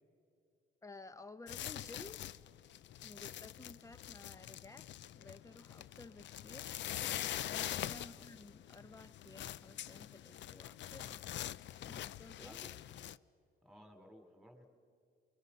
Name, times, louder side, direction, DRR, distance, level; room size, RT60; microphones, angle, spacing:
voice 1, 0.8-2.2 3.0-4.9 5.1-6.7 7.1-11.2 11.8-12.5, left 2 dB, 15° left, 12 dB, 0.8 m, -54 dB
sound 1, 1.5-13.2, left 12 dB, 65° left, 0.5 m, -44 dB
voice 2, 12.4-12.7 13.6-14.7, equal, ahead, 4 dB, 3.0 m, -57 dB
28.0 x 23.0 x 5.5 m, 2.4 s
cardioid pair, 90°, 20 cm